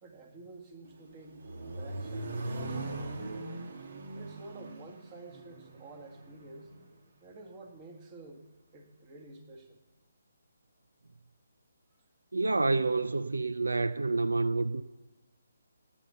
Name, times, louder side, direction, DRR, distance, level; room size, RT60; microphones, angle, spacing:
voice 1, 0.0-3.2 4.1-6.7 7.2-8.4 8.7-9.8, right 2 dB, 25° right, 2.0 m, -50 dB
Accelerating revving vroom, 0.9-6.9, right 2 dB, 55° right, 1.7 m, -40 dB
voice 2, 12.3-14.8, right 3 dB, 85° right, 0.5 m, -28 dB
18.5 x 7.3 x 6.8 m
figure-of-eight pair, 150°, 0 cm